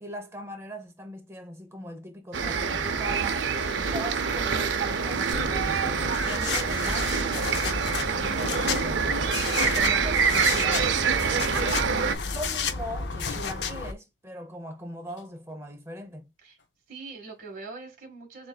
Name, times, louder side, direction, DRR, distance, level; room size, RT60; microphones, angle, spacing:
voice 1, 0.0-3.5 3.7-9.3 9.7-11.0 11.5-11.9 12.3-16.3, equal, 15° right, 0.8 m, -40 dB
sound 1, 2.3-12.2, right 5 dB, 75° right, 0.6 m, -26 dB
sound 2, 5.3-13.9, left 5 dB, 65° left, 0.6 m, -32 dB
sound 3, 9.5-10.3 11.6-11.9 12.3-12.5 12.8-13.7 15.0-15.6 16.6-16.7, left 3 dB, 80° left, 1.3 m, -43 dB
voice 2, 11.8-12.4 16.4-16.6 16.9-18.5, right 3 dB, 50° right, 1.7 m, -42 dB
6.8 x 2.5 x 2.3 m
head